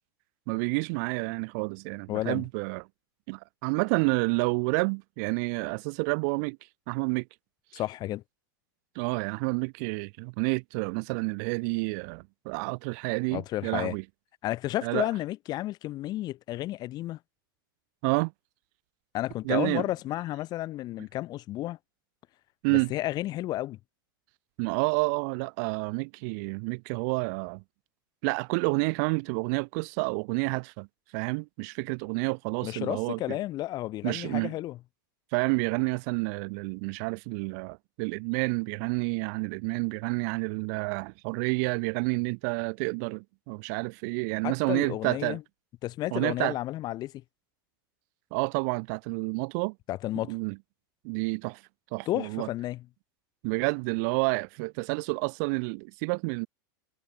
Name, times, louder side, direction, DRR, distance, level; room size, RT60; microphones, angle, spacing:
voice 1, 0.5-2.9 3.3-6.6 6.9-7.2 9.0-14.0 14.8-15.1 18.0-18.3 19.4-19.8 22.6-22.9 24.6-27.6 28.2-30.9 31.1-33.4 34.0-34.5 35.3-45.4 46.1-46.5 48.3-49.7 50.3-50.6 51.0-51.6 51.9-52.5 53.4-56.5, right 35 dB, 50° right, 0.6 m, -29 dB
voice 2, 2.1-2.4 7.7-8.2 13.3-13.9 14.4-17.2 19.1-21.8 22.7-23.8 32.6-34.8 44.4-45.4 45.8-47.1 49.9-50.4 52.1-52.8, left 15 dB, 35° left, 1.5 m, -32 dB
supercardioid pair, 135°, 12 cm